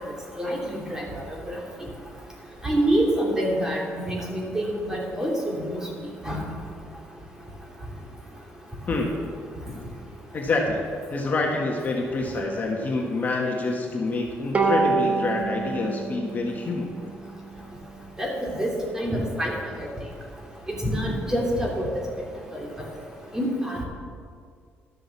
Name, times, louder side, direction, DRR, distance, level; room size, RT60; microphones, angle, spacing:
voice 1, 2.6-5.8 6.2-6.4 18.2-18.3 18.6-18.7 18.9-19.5 19.8-19.9 20.8-21.9 22.5-22.7 23.3-23.8, right 1 dB, 10° right, -2 dB, 2.8 m, -26 dB
voice 2, 10.3-10.8 11.1-16.9, left 3 dB, 35° left, 0 dB, 1.6 m, -27 dB
Bowed string instrument, 14.5-17.9, right 3 dB, 25° right, 1.3 m, -27 dB
12.0 x 7.6 x 7.3 m, 2.1 s
cardioid pair, 130°, 5 cm